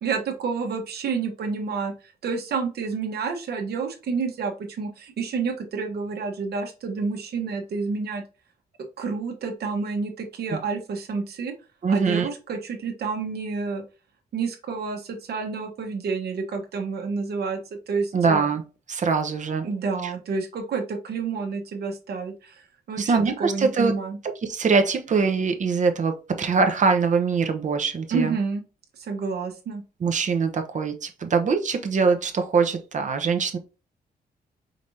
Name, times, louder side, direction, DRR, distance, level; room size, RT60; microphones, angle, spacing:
voice 1, 0.0-8.2 9.0-11.5 11.9-13.8 14.3-17.6 17.9-18.5 19.6-22.6 22.9-24.2 28.1-28.6 29.0-29.8, right 4 dB, 80° right, 1.2 m, -29 dB
voice 2, 11.8-12.3 18.1-18.6 18.9-19.6 20.0-20.1 23.0-23.9 24.4-28.3 30.0-33.6, right 5 dB, 50° right, 0.7 m, -23 dB
5.0 x 3.2 x 2.6 m
cardioid pair, 115°, 16 cm